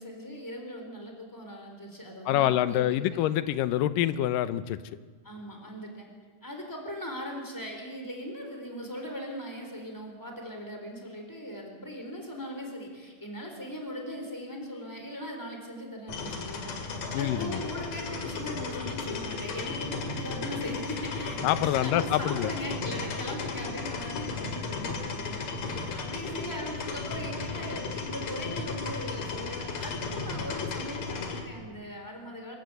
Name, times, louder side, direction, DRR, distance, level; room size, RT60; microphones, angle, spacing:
voice 1, 0.0-3.2 5.2-6.1 6.4-16.8 17.2-32.6, equal, 5° left, 2 dB, 3.6 m, -39 dB
voice 2, 2.3-4.8 17.1-17.6 21.4-22.5, left 12 dB, 85° left, 14 dB, 2.4 m, -26 dB
sound 1, 16.1-31.4, left 4 dB, 55° left, 3.3 m, -35 dB
25.5 x 15.0 x 8.0 m, 1.4 s
omnidirectional pair, 3.8 m